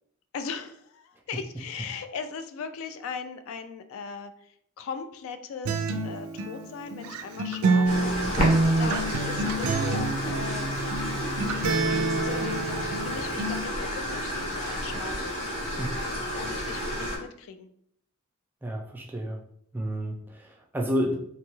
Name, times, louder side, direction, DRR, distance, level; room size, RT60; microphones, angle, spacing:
voice 1, 0.3-8.2 8.4-10.8 11.9-15.3 16.3-17.7, left 5 dB, 70° left, 9 dB, 0.3 m, -39 dB
Acoustic guitar, 5.6-13.6, right 3 dB, 85° right, 0.3 m, -27 dB
sound 1, 7.9-17.2, equal, 35° left, 0.8 m, -31 dB
voice 2, 18.6-19.4 19.7-21.1, equal, 10° right, 0 dB, 0.3 m, -30 dB
3.0 x 2.3 x 3.0 m, 0.68 s
head